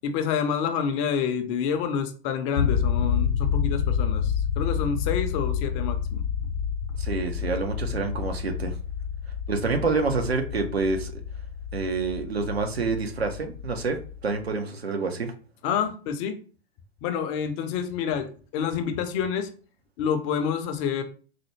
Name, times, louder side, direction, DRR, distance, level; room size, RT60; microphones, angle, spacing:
voice 1, 0.0-6.5 15.6-16.4 17.0-19.5 20.0-21.0, left 7 dB, 30° left, 8 dB, 0.4 m, -28 dB
sound 1, 2.6-14.5, left 7 dB, 85° left, 0.5 m, -29 dB
voice 2, 7.0-8.8 9.5-11.2 11.7-15.3, right 4 dB, 85° right, 5 dB, 0.7 m, -27 dB
4.1 x 2.1 x 3.0 m, 0.39 s
figure-of-eight pair, 105°, 31 cm